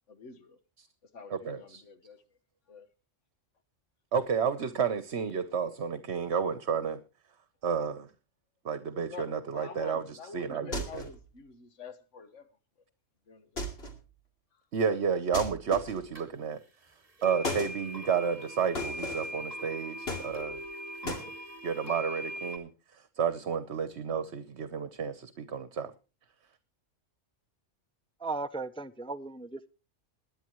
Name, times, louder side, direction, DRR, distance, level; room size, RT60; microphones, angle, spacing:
voice 1, 0.1-0.6 1.1-2.2 2.7-2.9 9.1-12.5 13.3-13.7, left 5 dB, 75° left, 1.6 m, -47 dB
voice 2, 1.3-1.8 4.1-7.0 7.6-8.1 8.6-10.0 10.3-11.0 14.7-16.6 17.2-20.6 21.0-21.2 21.6-22.7 23.2-25.9, right 6 dB, 65° right, 1.2 m, -31 dB
sound 1, 10.7-11.2 13.6-14.0 15.3-16.1 17.4-17.8 18.7-19.4 20.1-20.7 21.1-21.3, left 2 dB, 55° left, 2.7 m, -36 dB
sound 2, 16.2-16.3 17.2-22.6, equal, 30° right, 2.4 m, -40 dB
voice 3, 28.2-29.7, right 3 dB, 10° left, 0.4 m, -36 dB
21.0 x 10.0 x 3.1 m
omnidirectional pair, 1.3 m